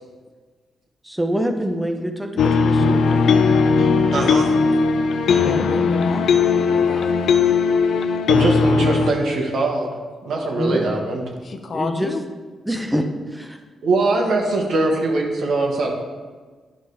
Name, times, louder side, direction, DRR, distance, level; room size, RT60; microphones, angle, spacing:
voice 1, 1.0-3.2 5.4-5.9 10.6-11.0 11.7-12.1 12.7-13.6, equal, 5° right, 4 dB, 0.8 m, -25 dB
sound 1, 2.4-9.1, left 5 dB, 80° left, 0.5 m, -18 dB
voice 2, 4.1-4.5 8.3-9.9 10.2-11.2 13.8-15.9, right 2 dB, 75° right, 0 dB, 1.5 m, -21 dB
voice 3, 5.4-7.2 11.4-12.2, left 4 dB, 55° left, 6 dB, 0.8 m, -31 dB
10.0 x 5.1 x 3.4 m, 1.4 s
cardioid pair, 95°, 0 cm